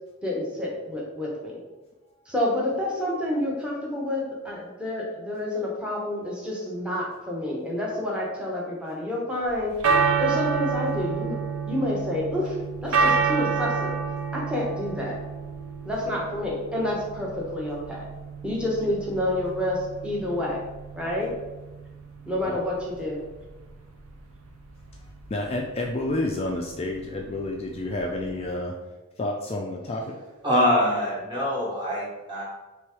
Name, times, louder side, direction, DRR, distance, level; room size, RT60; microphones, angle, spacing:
voice 1, 0.2-1.6 2.3-9.7 10.2-11.4 11.7-12.6 12.8-13.9 14.3-15.2 15.8-18.0 18.4-20.6 21.0-21.3 22.3-23.2, left 1 dB, 5° right, -4 dB, 0.8 m, -28 dB
sound 1, 9.5-28.5, right 5 dB, 75° right, 0.6 m, -29 dB
voice 2, 25.0-28.7 29.2-30.2, left 2 dB, 25° left, 0 dB, 0.3 m, -30 dB
voice 3, 30.4-32.4, left 1 dB, 20° right, -5 dB, 1.3 m, -24 dB
3.3 x 3.1 x 4.7 m, 1.1 s
head